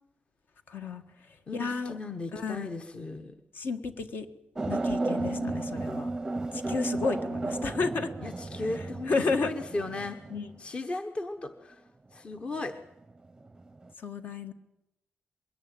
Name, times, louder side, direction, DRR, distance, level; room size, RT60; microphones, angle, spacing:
voice 1, 0.7-1.0 1.5-1.9 2.3-2.7 3.5-4.3 4.7-6.1 6.5-8.1 9.1-9.5 10.3-10.5 14.0-14.5, left 4 dB, 55° left, 8 dB, 1.8 m, -32 dB
voice 2, 1.5-3.4 5.1-5.7 8.2-10.2 10.6-11.8 12.1-12.7, left 3 dB, 30° left, 7 dB, 1.1 m, -36 dB
sound 1, 4.6-10.6 13.4-13.9, right 2 dB, 15° right, 0.7 m, -33 dB
21.5 x 17.5 x 9.0 m, 0.88 s
wide cardioid pair, 155°, 4 cm